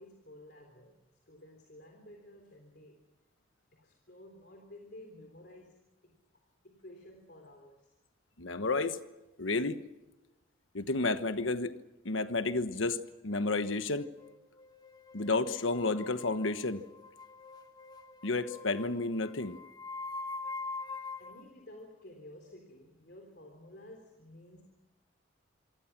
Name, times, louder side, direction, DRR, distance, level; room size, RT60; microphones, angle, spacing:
voice 1, 0.0-3.0 3.7-5.8 6.0-6.2 6.6-7.9 21.2-24.6, left 1 dB, 55° left, 3 dB, 3.6 m, -53 dB
voice 2, 8.4-9.0 9.4-9.8 10.7-11.7 12.0-13.0 13.2-14.1 15.1-16.8 18.2-19.6, left 3 dB, 85° left, 10 dB, 1.3 m, -31 dB
sound 1, 13.3-21.5, left 3 dB, 20° left, 1.3 m, -44 dB
27.0 x 24.0 x 6.1 m, 1.0 s
head